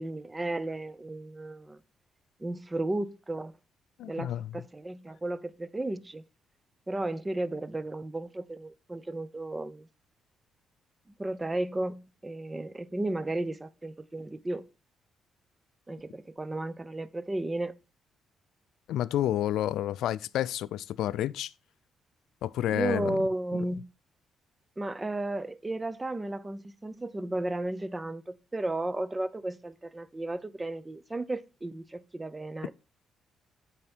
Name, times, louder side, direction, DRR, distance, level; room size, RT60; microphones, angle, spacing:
voice 1, 0.0-1.8 2.4-3.6 4.0-6.2 6.9-9.9 11.2-14.7 15.9-17.8 22.7-23.9 24.8-32.7, right 2 dB, 20° right, 0.6 m, -34 dB
voice 2, 4.0-4.6 18.9-21.5 22.4-23.2 23.5-23.6, left 12 dB, 80° left, 0.3 m, -30 dB
8.5 x 4.3 x 4.4 m
cardioid pair, 90°, 0 cm